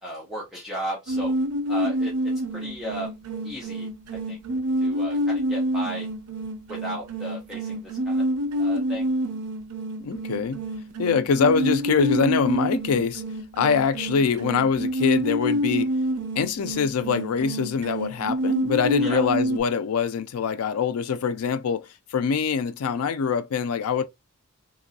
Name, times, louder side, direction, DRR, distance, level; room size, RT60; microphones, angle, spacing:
voice 1, 0.0-1.3 1.7-2.1 2.5-3.1 3.4-3.9 4.3-4.4 4.8-6.1 6.7-8.2 8.6-9.1 19.0-19.3, equal, ahead, 0.8 m, -35 dB
sound 1, 1.1-19.6, equal, 90° right, 0.5 m, -27 dB
voice 2, 10.0-10.6 11.0-13.2 13.5-15.9 16.4-24.0, left 6 dB, 85° left, 0.4 m, -24 dB
3.0 x 2.6 x 2.6 m
head